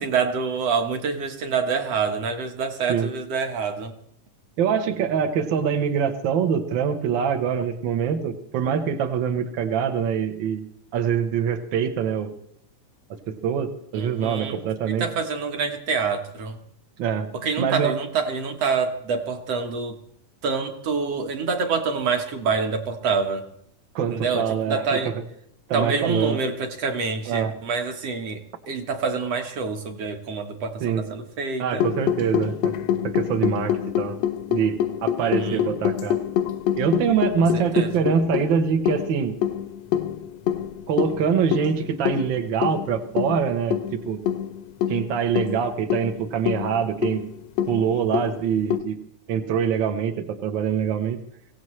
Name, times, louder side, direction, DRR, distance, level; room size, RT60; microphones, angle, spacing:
voice 1, 0.0-3.9 13.9-14.6 15.0-16.6 17.4-20.0 20.4-23.5 24.1-25.1 25.7-31.8 35.2-35.7 37.5-37.9, right 5 dB, 55° right, 5 dB, 2.1 m, -26 dB
voice 2, 4.6-10.6 10.9-12.3 13.3-15.1 17.0-17.3 17.6-18.0 23.9-24.8 25.7-26.4 27.3-27.5 30.8-31.0 31.6-32.7 33.0-34.2 34.5-36.2 36.7-39.3 40.9-44.2 44.9-47.2 47.7-49.0 49.3-51.2, right 7 dB, 75° right, 6 dB, 1.1 m, -24 dB
sound 1, 31.8-48.8, left 10 dB, 80° left, 1.5 m, -26 dB
24.0 x 16.5 x 3.2 m, 0.70 s
omnidirectional pair, 3.7 m